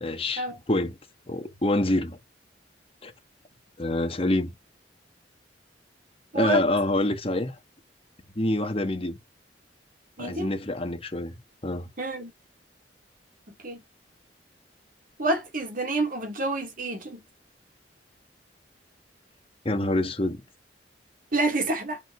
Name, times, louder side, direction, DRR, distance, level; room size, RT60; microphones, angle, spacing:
voice 1, 0.0-1.0 1.3-2.2 3.0-3.1 3.8-4.5 6.3-7.5 8.4-9.2 10.2-11.3 11.6-11.9 19.6-20.4, left 1 dB, 30° left, 1.3 m, -26 dB
voice 2, 10.2-10.5 12.0-12.3 13.6-13.8 15.2-17.2 21.3-22.0, right 2 dB, 50° right, 2.1 m, -28 dB
5.0 x 4.8 x 5.9 m
head